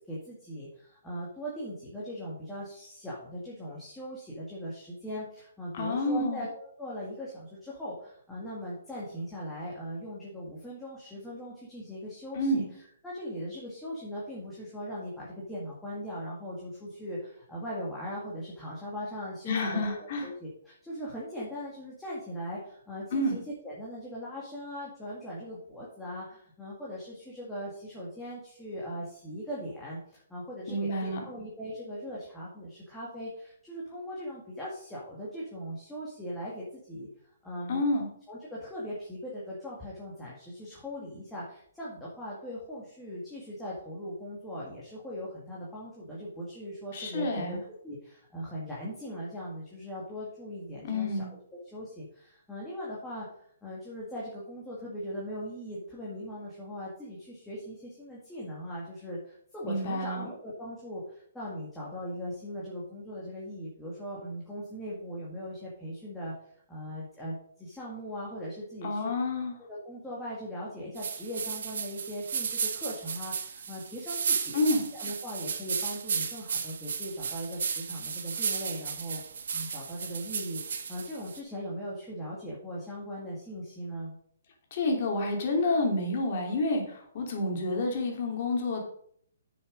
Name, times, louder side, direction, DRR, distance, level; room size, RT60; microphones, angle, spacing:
voice 1, 0.1-12.6 13.0-37.1 37.4-37.8 38.3-47.6 47.8-51.3 51.7-66.3 66.7-69.1 69.7-74.6 74.9-79.2 79.5-84.2, equal, 5° left, -7 dB, 2.1 m, -39 dB
voice 2, 5.7-6.4 12.3-12.6 19.4-20.3 23.1-23.4 30.7-31.2 37.7-38.1 46.9-47.6 50.8-51.3 59.6-60.3 68.8-69.5 74.5-74.8 84.7-88.8, left 2 dB, 40° left, 1 dB, 2.9 m, -29 dB
sound 1, 71.0-81.4, right 6 dB, 65° right, 1.4 m, -34 dB
9.2 x 6.3 x 5.3 m, 0.64 s
hypercardioid pair, 165°, 0 cm